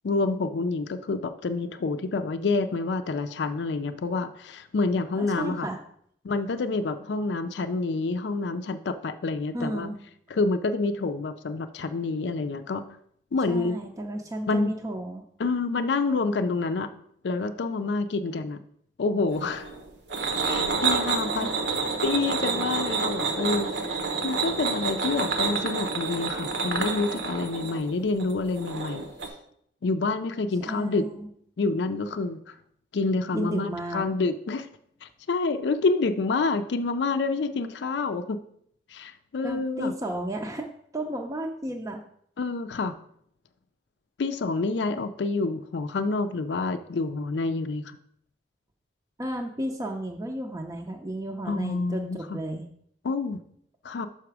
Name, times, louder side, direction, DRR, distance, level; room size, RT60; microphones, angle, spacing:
voice 1, 0.0-5.7 6.2-9.9 10.3-12.9 13.3-13.8 14.5-14.7 15.4-16.9 17.2-18.6 19.0-19.7 20.4-21.5 22.0-29.1 29.8-31.1 31.6-32.6 32.9-34.7 35.0-38.4 38.9-39.9 42.4-43.0 44.2-47.8 51.5-52.4 53.0-53.4 53.8-54.1, left 3 dB, 75° left, 9 dB, 0.4 m, -28 dB
voice 2, 5.2-5.8 9.5-10.0 13.5-15.2 21.3-21.5 30.7-31.3 33.3-34.0 39.4-42.0 49.2-52.6, right 1 dB, 20° right, 1 dB, 0.5 m, -33 dB
sound 1, 19.3-29.3, right 4 dB, 80° right, 1.1 m, -28 dB
6.0 x 5.7 x 4.7 m, 0.67 s
head